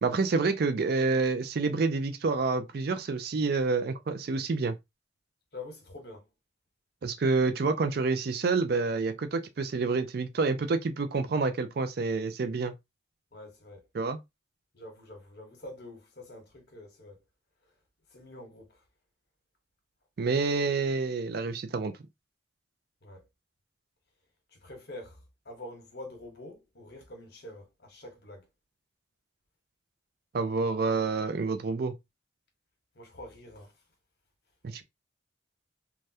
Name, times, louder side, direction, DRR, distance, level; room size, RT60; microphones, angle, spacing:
voice 1, 0.0-4.8 7.0-12.7 13.9-14.2 20.2-21.9 30.3-31.9 34.6-34.8, right 4 dB, 50° right, 0.4 m, -28 dB
voice 2, 5.5-6.3 13.3-13.9 14.7-17.2 18.1-18.7 23.0-23.2 24.6-28.5 32.9-33.7, left 1 dB, 50° left, 1.0 m, -46 dB
3.3 x 2.2 x 2.7 m
head